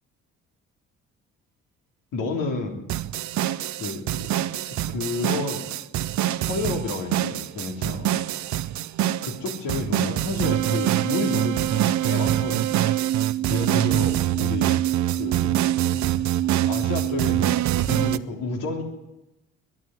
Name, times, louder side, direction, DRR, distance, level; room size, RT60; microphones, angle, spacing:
voice 1, 2.1-2.9 3.8-4.4 4.7-5.7 6.4-8.1 9.2-12.7 13.4-14.8 15.1-16.0 16.7-18.8, left 3 dB, 60° left, 2 dB, 3.5 m, -31 dB
sound 1, 2.9-18.2, right 13 dB, 55° right, 0.8 m, -24 dB
21.5 x 12.5 x 9.6 m, 0.97 s
hypercardioid pair, 50°, 35 cm